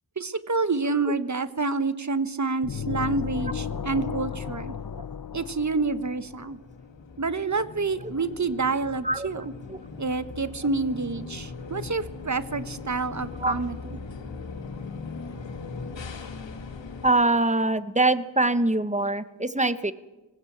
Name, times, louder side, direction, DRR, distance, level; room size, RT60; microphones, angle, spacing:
voice 1, 0.2-4.7 5.3-6.6 7.2-9.5 10.0-14.0, right 3 dB, 40° right, 13 dB, 1.2 m, -28 dB
sound 1, 2.6-6.4, left 7 dB, 50° left, 0.8 m, -34 dB
sound 2, 4.8-17.1, left 4 dB, 85° left, 2.2 m, -40 dB
voice 2, 9.0-9.4 9.7-9.8 13.4-13.5 17.0-19.9, right 2 dB, 15° right, 13 dB, 1.2 m, -23 dB
19.0 x 16.0 x 8.6 m, 1.1 s
cardioid pair, 50°, 43 cm